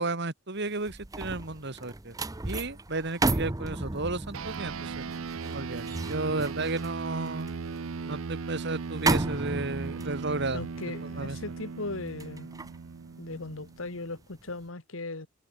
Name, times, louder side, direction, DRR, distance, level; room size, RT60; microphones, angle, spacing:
voice 1, 0.0-2.2 2.4-5.1 5.5-7.5 8.1-10.7 11.0-11.4, right 3 dB, 60° right, 2.5 m, -33 dB
sound 1, 0.6-14.0 14.4-14.6, right 2 dB, 15° right, 0.7 m, -34 dB
sound 2, 4.3-14.1, right 5 dB, 85° right, 0.6 m, -38 dB
voice 2, 10.5-12.5 13.2-15.3, left 2 dB, 80° left, 1.8 m, -38 dB
head